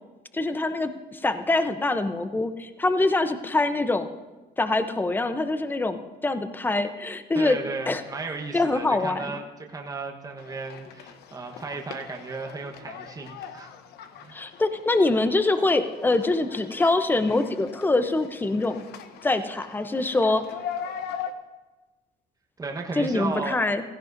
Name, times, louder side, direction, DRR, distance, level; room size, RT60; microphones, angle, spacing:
voice 1, 0.3-4.1 4.6-6.0 6.2-7.6 7.9-8.0 8.5-9.3 14.3-18.9 19.2-20.4 23.0-23.8, left 2 dB, 10° left, 9 dB, 0.7 m, -24 dB
voice 2, 7.3-13.7 14.2-14.4 22.6-23.6, right 3 dB, 20° right, 2 dB, 1.2 m, -35 dB
sound 1, 10.4-21.3, left 8 dB, 75° left, 0.8 m, -41 dB
16.0 x 16.0 x 2.7 m, 1.2 s
cardioid pair, 110°, 17 cm